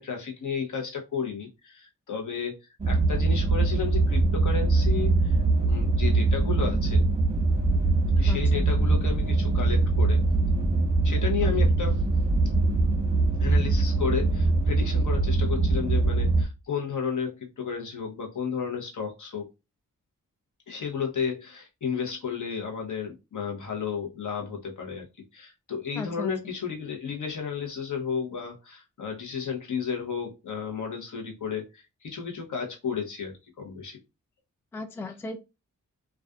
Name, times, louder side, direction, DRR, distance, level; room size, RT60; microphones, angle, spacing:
voice 1, 0.0-7.1 8.2-10.3 11.0-12.0 13.4-19.5 20.7-25.1 25.3-34.0, left 6 dB, 60° left, 1 dB, 0.9 m, -33 dB
sound 1, 2.8-16.4, right 3 dB, 20° right, 0.8 m, -23 dB
voice 2, 8.3-8.7 11.4-11.7 26.0-26.3 34.7-35.4, left 3 dB, 5° left, 7 dB, 0.3 m, -36 dB
2.4 x 2.4 x 2.3 m, 0.26 s
cardioid pair, 45°, 34 cm